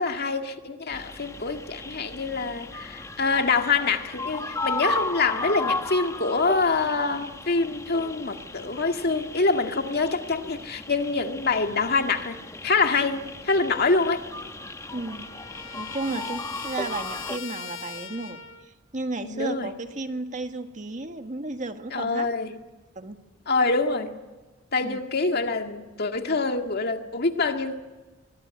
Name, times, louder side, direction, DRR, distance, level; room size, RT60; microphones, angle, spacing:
voice 1, 0.0-14.3 16.1-16.2 19.2-19.7 21.9-22.6 23.5-24.1 24.7-27.7, left 3 dB, 55° left, 5 dB, 2.0 m, -25 dB
sound 1, 0.9-17.4, left 2 dB, 15° left, 1.0 m, -35 dB
Trumpet, 14.3-18.7, left 7 dB, 75° left, 1.9 m, -41 dB
voice 2, 14.9-15.3 15.7-22.3 23.0-23.2 24.8-25.0, right 2 dB, 40° right, 7 dB, 1.7 m, -33 dB
23.5 x 23.0 x 9.8 m, 1.2 s
head